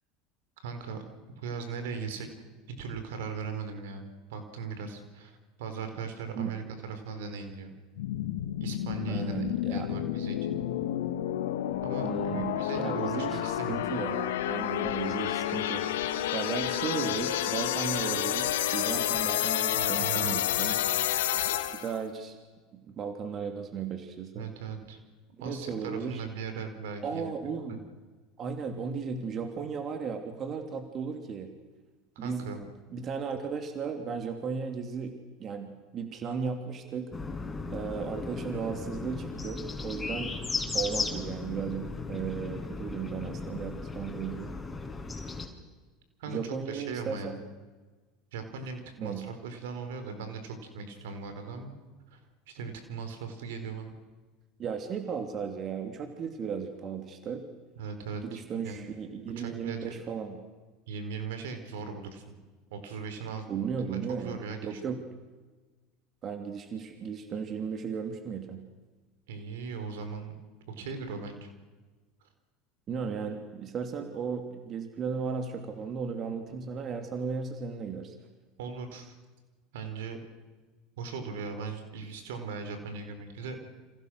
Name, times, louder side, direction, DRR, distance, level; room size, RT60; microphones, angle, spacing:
voice 1, 0.6-1.0 1.4-2.3 2.7-7.7 8.6-9.3 9.7-10.6 11.8-13.9 19.8-20.9 24.3-25.0 25.4-27.3 27.7-27.8 32.1-32.6 46.2-47.4 48.3-51.7 52.1-52.2 52.5-53.9 57.8-58.9 59.4-59.9 60.9-62.2 62.7-63.5 63.9-65.0 69.3-70.3 70.7-71.5 78.6-79.2 79.7-80.2 81.0-83.6, right 5 dB, 70° right, 8 dB, 4.6 m, -39 dB
sound 1, 8.0-22.0, left 12 dB, 75° left, 2.0 m, -30 dB
voice 2, 9.1-10.0 12.0-20.7 21.7-22.4 22.7-24.4 25.4-26.2 27.0-27.8 28.4-31.5 32.2-32.5 32.9-37.1 37.7-40.3 40.7-44.5 46.3-47.4 49.0-49.3 54.6-57.4 58.2-60.4 63.5-65.0 66.2-68.6 72.9-78.1, right 6 dB, 40° right, 5 dB, 3.1 m, -35 dB
sound 2, 37.1-45.5, left 4 dB, 15° left, 5.9 m, -36 dB
29.5 x 27.5 x 6.5 m, 1.3 s
hypercardioid pair, 80°, 0 cm